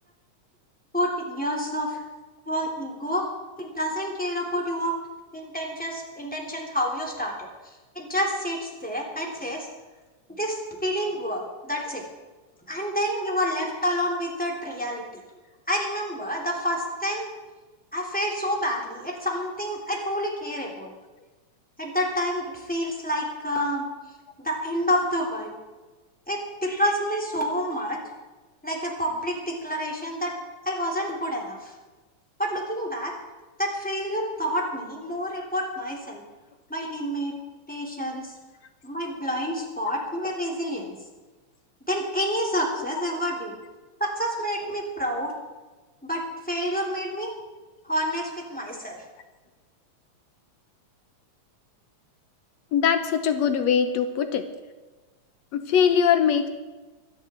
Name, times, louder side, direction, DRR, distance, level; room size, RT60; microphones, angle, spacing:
voice 1, 0.9-2.0 2.5-3.2 3.6-4.9 5.3-7.5 7.9-9.7 10.3-12.0 12.7-15.0 15.7-17.3 17.9-20.9 21.8-23.8 24.4-25.5 26.3-28.0 28.6-30.3 30.6-31.7 32.4-33.1 33.6-36.2 36.7-37.3 37.7-38.3 38.8-40.9 41.9-43.5 44.0-45.3 46.0-47.3 47.8-49.0, equal, 5° left, -1 dB, 3.0 m, -28 dB
voice 2, 52.7-54.4 55.5-56.5, left 7 dB, 70° left, 8 dB, 2.0 m, -21 dB
24.5 x 11.0 x 4.5 m, 1.2 s
omnidirectional pair, 3.4 m